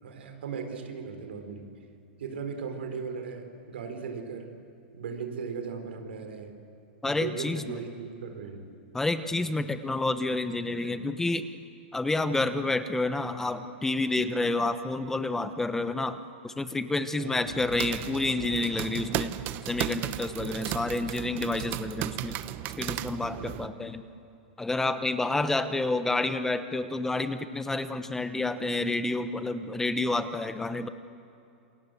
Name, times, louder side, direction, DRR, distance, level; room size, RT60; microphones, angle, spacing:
voice 1, 0.0-1.7 2.2-4.5 4.9-6.5 7.0-8.6 9.4-9.5 10.7-10.9 17.2-17.6 20.4-20.7 23.4-23.7, right 5 dB, 85° right, 6 dB, 4.4 m, -38 dB
voice 2, 7.0-7.8 8.9-11.5 11.9-19.3 19.7-22.4 22.8-24.0 24.6-30.9, left 2 dB, 5° left, 10 dB, 0.9 m, -29 dB
sound 1, 17.4-23.7, right 13 dB, 35° right, 0.9 m, -35 dB
28.0 x 23.0 x 7.8 m, 2.6 s
hypercardioid pair, 140°, 6 cm